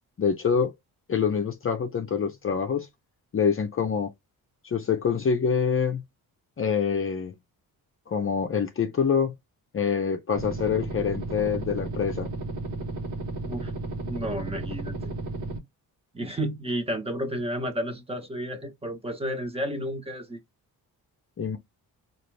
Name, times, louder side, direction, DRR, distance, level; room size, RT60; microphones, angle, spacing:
voice 1, 0.2-0.7 1.1-2.9 3.3-4.1 4.6-6.0 6.6-7.3 8.1-9.3 9.7-12.3 21.4-21.6, left 6 dB, 35° left, 0.7 m, -25 dB
sound 1, 10.3-15.6, right 2 dB, 60° right, 1.2 m, -33 dB
voice 2, 14.0-14.9 16.1-20.4, equal, 15° right, 1.1 m, -31 dB
4.0 x 2.6 x 3.3 m
cardioid pair, 105°, 37 cm